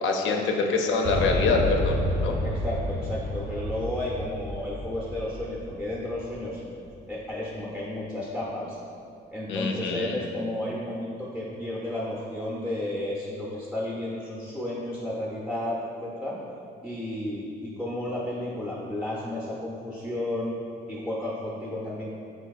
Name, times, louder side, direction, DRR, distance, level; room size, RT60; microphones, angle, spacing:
voice 1, 0.0-2.4 9.5-10.2, left 3 dB, 75° left, 2 dB, 0.4 m, -25 dB
Boom, 1.0-6.9, left 1 dB, 80° right, 0.7 m, -30 dB
voice 2, 2.4-6.6 7.1-8.8 9.3-16.4 16.8-20.5 20.9-22.1, left 1 dB, ahead, -6 dB, 0.4 m, -32 dB
4.1 x 2.6 x 2.3 m, 2.5 s
cardioid pair, 90°, 20 cm